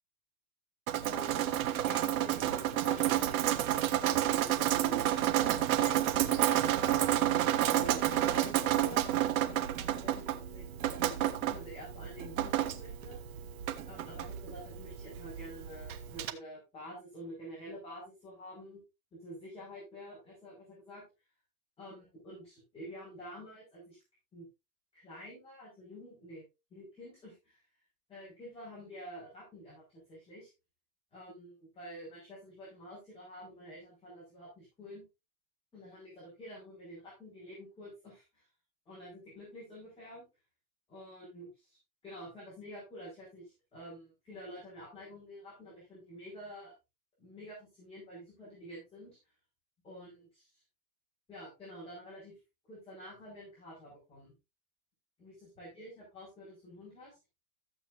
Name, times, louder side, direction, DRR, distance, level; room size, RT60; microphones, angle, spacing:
Drip, 0.9-16.3, right 12 dB, 75° right, 1.4 m, -30 dB
voice 1, 1.1-3.5 4.0-5.0 5.7-13.2 13.8-18.8 19.1-21.0 21.8-24.0 24.3-24.5 24.9-26.4 26.7-27.6 28.1-29.8 30.1-30.5 31.1-35.0 35.7-38.5 38.9-40.2 40.9-46.7 47.2-49.2 49.8-50.5 51.3-52.4 52.7-54.3 55.2-57.2, equal, 15° left, -8 dB, 5.7 m, -48 dB
14.5 x 8.4 x 2.7 m, 0.25 s
supercardioid pair, 170°, 43 cm